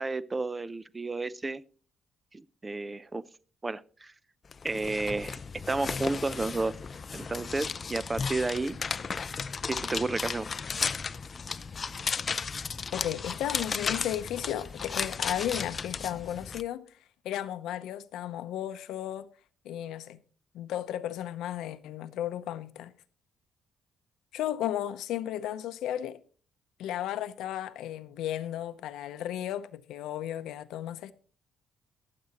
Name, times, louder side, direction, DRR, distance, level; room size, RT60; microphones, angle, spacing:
voice 1, 0.0-1.6 2.3-3.2 3.6-4.1 4.6-6.8 7.1-8.8 9.7-10.5, right 3 dB, 20° right, 0.6 m, -32 dB
sound 1, 4.5-16.6, left 5 dB, 40° left, 0.5 m, -35 dB
voice 2, 12.9-16.9 17.2-19.3 19.6-20.2 20.5-22.9 24.3-26.2 26.8-31.1, left 11 dB, 85° left, 0.7 m, -34 dB
22.5 x 7.7 x 3.0 m
cardioid pair, 90°, 0 cm